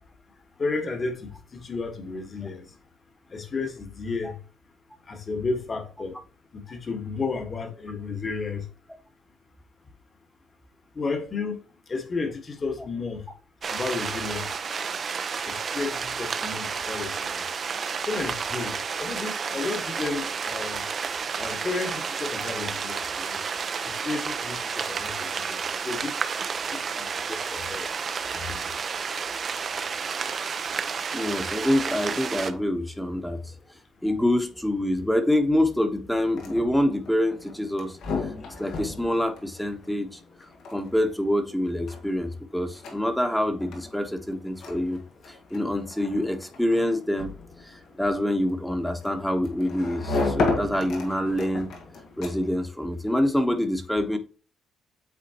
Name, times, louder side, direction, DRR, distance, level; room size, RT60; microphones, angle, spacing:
voice 1, 0.6-2.7 3.3-4.4 5.1-6.2 6.5-8.6 10.9-11.6 11.9-13.2 13.7-14.5 15.4-17.4 18.1-20.8 21.4-23.4 23.8-25.6 25.8-26.2 26.7-26.8 27.3-27.9 28.3-28.7, left 4 dB, 40° left, 1.6 m, -32 dB
sound 1, 13.6-32.5, right 6 dB, 45° right, 0.7 m, -31 dB
voice 2, 31.1-33.5 34.0-38.0 38.6-40.2 40.7-45.0 45.3-47.3 47.6-51.7 52.2-54.2, left 1 dB, 5° left, 1.1 m, -26 dB
sound 2, 36.1-52.7, left 3 dB, 80° left, 1.7 m, -35 dB
8.5 x 3.8 x 2.9 m
cardioid pair, 90°, 0 cm